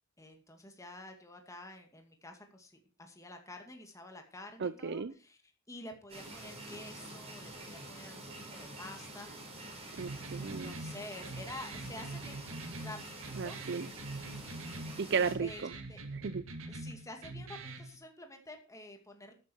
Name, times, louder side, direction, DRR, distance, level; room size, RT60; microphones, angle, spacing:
voice 1, 0.2-5.4 5.7-9.3 10.4-12.5 12.8-13.6 15.4-16.0 16.7-19.3, left 2 dB, 15° left, 4 dB, 2.4 m, -49 dB
voice 2, 4.6-5.1 10.0-10.7 13.4-13.9 15.0-15.7 16.1-16.4, right 5 dB, 55° right, 15 dB, 0.5 m, -34 dB
sound 1, 6.1-15.3, right 2 dB, 30° right, 4.9 m, -47 dB
sound 2, 10.0-17.9, right 2 dB, 80° right, 2.3 m, -44 dB
13.0 x 10.0 x 4.7 m, 0.34 s
head